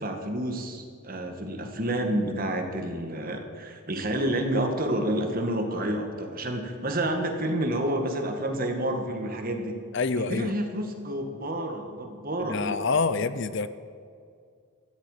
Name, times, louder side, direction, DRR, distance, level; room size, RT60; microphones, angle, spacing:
voice 1, 0.0-9.8 10.1-12.8, right 1 dB, 40° right, 4 dB, 1.8 m, -29 dB
voice 2, 9.9-10.5 12.5-13.7, left 4 dB, 55° left, 14 dB, 0.6 m, -26 dB
15.5 x 15.0 x 5.0 m, 2.3 s
head